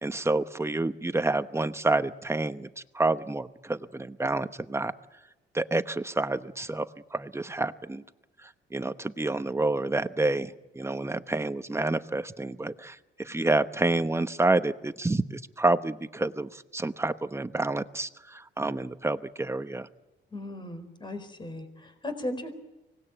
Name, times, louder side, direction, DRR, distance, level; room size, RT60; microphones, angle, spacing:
voice 1, 0.0-2.7 2.9-4.9 5.5-8.0 8.7-19.9, right 2 dB, 15° right, 11 dB, 1.0 m, -28 dB
voice 2, 20.3-22.5, left 1 dB, 25° left, 8 dB, 4.3 m, -37 dB
24.5 x 19.0 x 8.9 m, 1.0 s
cardioid pair, 90°, 20 cm